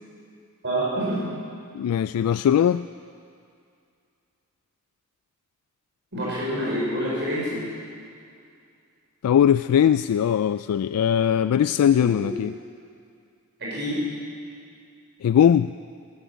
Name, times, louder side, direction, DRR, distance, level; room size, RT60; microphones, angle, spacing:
voice 1, 0.6-1.3 6.1-7.6 13.6-14.0, right 1 dB, 55° right, -6 dB, 5.3 m, -27 dB
voice 2, 1.7-2.9 9.2-12.5 15.2-15.7, left 9 dB, 80° left, 13 dB, 0.3 m, -20 dB
13.0 x 13.0 x 8.2 m, 2.4 s
head